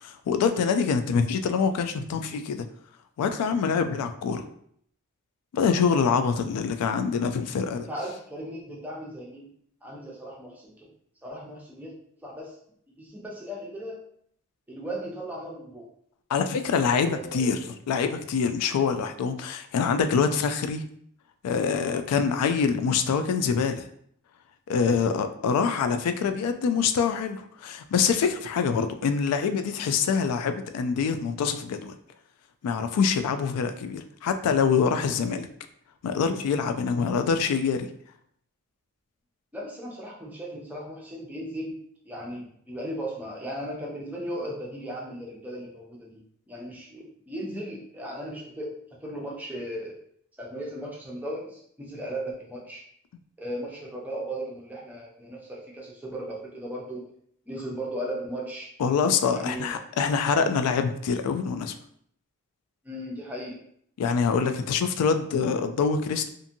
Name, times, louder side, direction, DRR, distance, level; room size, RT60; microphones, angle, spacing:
voice 1, 0.0-2.7 3.2-4.4 5.5-7.9 16.3-20.9 21.4-23.8 24.7-31.9 32.6-35.5 36.0-37.9 58.8-61.7 64.0-66.3, left 6 dB, 85° left, 9 dB, 0.3 m, -25 dB
voice 2, 7.9-9.5 9.8-10.9 11.2-11.9 12.2-12.6 12.9-14.0 14.7-15.9 17.0-17.6 24.8-25.3 39.5-41.8 42.0-50.0 50.4-52.8 53.4-57.0 57.5-58.7 59.3-59.8 62.8-63.6, right 1 dB, 5° right, -3 dB, 0.5 m, -37 dB
2.6 x 2.5 x 2.6 m, 0.67 s
head